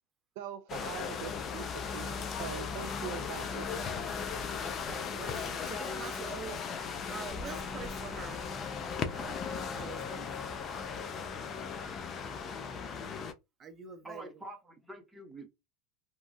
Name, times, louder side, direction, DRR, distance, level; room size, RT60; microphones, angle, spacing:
voice 1, 0.4-3.9, right 10 dB, 75° right, 0.3 m, -43 dB
sound 1, 0.7-13.3, left 6 dB, 35° left, 0.5 m, -37 dB
voice 2, 4.9-6.6 7.1-8.5 9.1-10.3 13.6-14.4, right 6 dB, 30° right, 0.7 m, -45 dB
voice 3, 14.0-15.5, right 2 dB, 10° right, 1.0 m, -46 dB
3.0 x 2.3 x 2.6 m
supercardioid pair, 115°, 0 cm